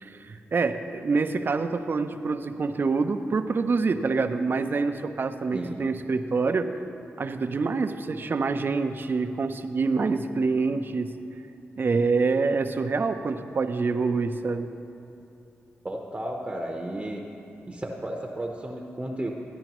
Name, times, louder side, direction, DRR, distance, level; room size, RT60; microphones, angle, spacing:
voice 1, 0.0-6.7 7.2-11.1 11.8-14.7, right 4 dB, 50° right, 8 dB, 0.6 m, -26 dB
voice 2, 5.5-5.8 15.8-17.2 17.7-19.3, right 1 dB, 20° right, 1 dB, 0.9 m, -33 dB
14.5 x 10.0 x 3.0 m, 2.8 s
cardioid pair, 60°, 5 cm